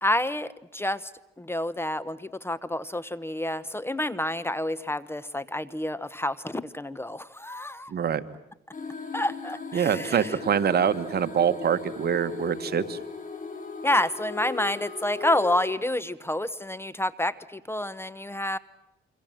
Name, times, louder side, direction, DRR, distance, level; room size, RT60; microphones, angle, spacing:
voice 1, 0.0-1.1 1.4-7.9 9.1-10.4 13.8-18.6, left 1 dB, 10° left, 18 dB, 0.9 m, -29 dB
voice 2, 7.9-8.2 9.7-13.0, right 8 dB, 55° right, 11 dB, 1.5 m, -25 dB
sound 1, 8.7-15.7, left 4 dB, 40° left, 6.0 m, -38 dB
27.0 x 24.5 x 7.6 m, 0.90 s
cardioid pair, 90°, 20 cm